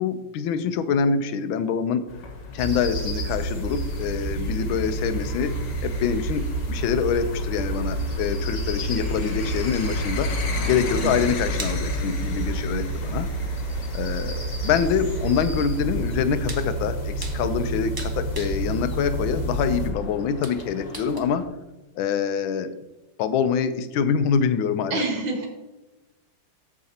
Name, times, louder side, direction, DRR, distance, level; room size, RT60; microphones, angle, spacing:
voice 1, 0.0-2.1 2.5-5.6 5.8-10.3 10.7-13.3 13.9-21.4 22.0-22.7 23.2-25.0, left 7 dB, 80° left, 11 dB, 1.4 m, -25 dB
sound 1, 2.1-21.4, left 3 dB, 65° left, 1.7 m, -36 dB
sound 2, 2.6-19.9, right 2 dB, 30° left, 0.9 m, -29 dB
sound 3, 9.2-21.2, right 2 dB, 35° right, 0.3 m, -45 dB
voice 2, 24.9-25.5, right 2 dB, 90° right, 0 dB, 2.4 m, -27 dB
13.5 x 4.9 x 2.8 m, 1.1 s
omnidirectional pair, 2.2 m